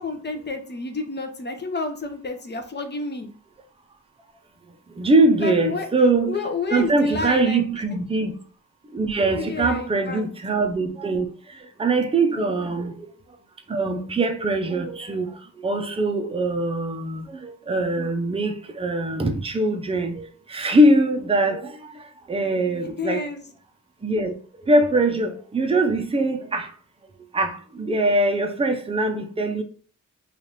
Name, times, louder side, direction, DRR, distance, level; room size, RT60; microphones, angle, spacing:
voice 1, 0.0-3.3 5.4-5.9 6.3-7.6 9.3-10.3 12.3-12.4 22.7-23.4, left 4 dB, 35° left, 0.6 m, -30 dB
voice 2, 5.0-6.4 6.7-8.3 8.9-11.3 11.8-13.1 13.7-15.3 15.6-23.3 24.0-24.3 24.7-26.7 27.3-29.6, right 2 dB, 20° right, 0.5 m, -22 dB
3.2 x 2.4 x 4.0 m
wide cardioid pair, 135°, 31 cm